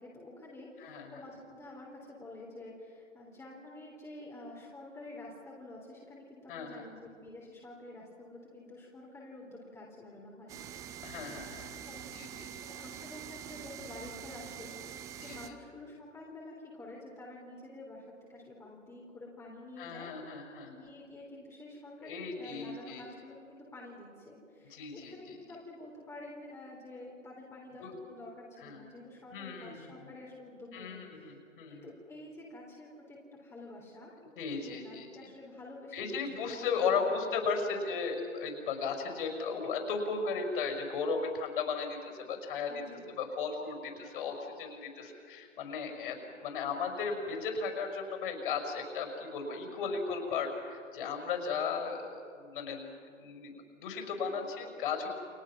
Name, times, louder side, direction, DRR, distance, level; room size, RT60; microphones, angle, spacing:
voice 1, 0.0-10.6 11.9-20.1 20.7-31.2 31.7-34.1 34.6-37.8 42.7-43.0 49.6-50.0 54.2-54.5, left 2 dB, 5° left, -3 dB, 3.4 m, -49 dB
voice 2, 0.8-1.2 6.5-6.9 11.0-11.8 12.1-12.6 15.1-15.4 19.8-20.9 22.0-23.0 24.7-25.4 27.8-27.9 28.6-28.8 29.3-30.1 30.7-31.9 34.4-35.1 35.9-52.1 52.4-52.9 53.2-53.5 53.8-55.1, left 5 dB, 40° left, 4 dB, 5.7 m, -36 dB
sound 1, 10.5-15.5, right 9 dB, 10° right, 0.6 m, -45 dB
30.0 x 26.5 x 6.0 m, 2.3 s
figure-of-eight pair, 120°, 38 cm